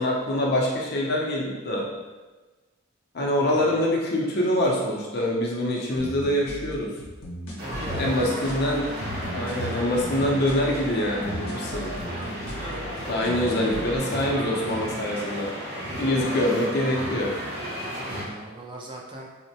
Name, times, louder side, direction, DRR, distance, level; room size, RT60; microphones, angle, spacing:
voice 1, 0.0-1.9 3.1-6.9 8.0-8.9 9.3-12.0 13.1-15.5 16.0-17.3, left 1 dB, 50° left, -2 dB, 0.5 m, -25 dB
voice 2, 3.2-3.8 7.6-8.7 12.0-12.4 17.8-19.3, right 2 dB, 20° right, -2 dB, 0.4 m, -40 dB
sound 1, 6.0-14.0, right 1 dB, 85° left, 0.7 m, -38 dB
sound 2, 7.6-18.2, equal, 45° right, 1.1 m, -33 dB
4.2 x 2.1 x 2.7 m, 1.2 s
head